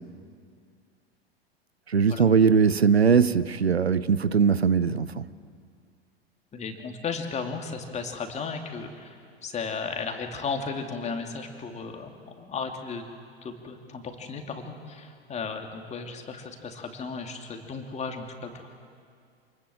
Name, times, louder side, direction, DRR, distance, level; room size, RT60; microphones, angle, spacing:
voice 1, 1.9-5.1, right 6 dB, 85° right, 16 dB, 0.8 m, -20 dB
voice 2, 6.5-9.2 9.4-13.0 13.4-18.7, left 5 dB, 20° left, 4 dB, 2.7 m, -35 dB
27.5 x 20.0 x 7.7 m, 2.3 s
figure-of-eight pair, 90°, 31 cm